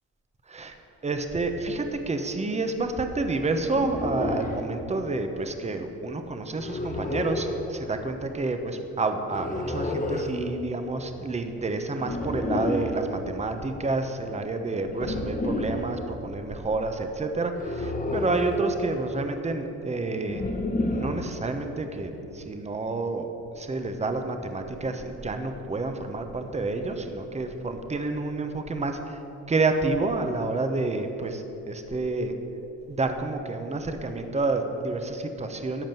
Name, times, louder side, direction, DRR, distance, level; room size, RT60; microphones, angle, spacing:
voice 1, 1.0-20.4 20.9-23.3 23.6-29.2 29.5-32.3 32.9-35.8, right 3 dB, 20° right, 6 dB, 1.1 m, -29 dB
sound 1, 3.7-4.6 6.6-7.6 9.3-10.3 12.0-13.0 14.9-15.9 17.6-18.6 20.3-21.3, left 2 dB, 25° left, 1.4 m, -30 dB
13.5 x 5.2 x 9.2 m, 3.0 s
cardioid pair, 90°, 30 cm